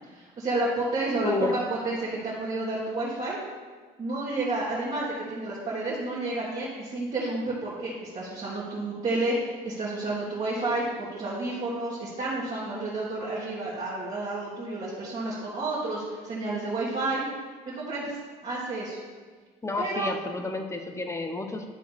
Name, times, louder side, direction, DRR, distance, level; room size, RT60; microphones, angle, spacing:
voice 1, 0.1-3.4 4.0-17.2 17.6-19.0 19.8-20.1, right 2 dB, 40° right, -8 dB, 1.9 m, -30 dB
voice 2, 1.2-1.6 19.6-21.7, left 3 dB, 15° left, 5 dB, 0.8 m, -30 dB
11.0 x 3.8 x 4.0 m, 1.5 s
cardioid pair, 110°, 17 cm